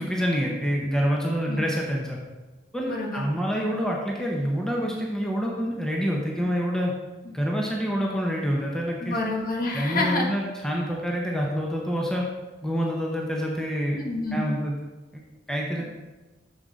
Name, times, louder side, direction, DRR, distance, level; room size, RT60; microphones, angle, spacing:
voice 1, 0.0-2.2 2.7-6.9 7.3-9.2 9.7-12.3 12.6-14.0 14.3-14.8 15.1-15.2 15.5-15.8, equal, 5° left, -2 dB, 0.8 m, -27 dB
voice 2, 2.8-3.3 7.2-7.3 9.0-10.3 14.0-14.6, left 2 dB, 50° left, -1 dB, 1.3 m, -28 dB
7.2 x 6.3 x 4.0 m, 1.2 s
head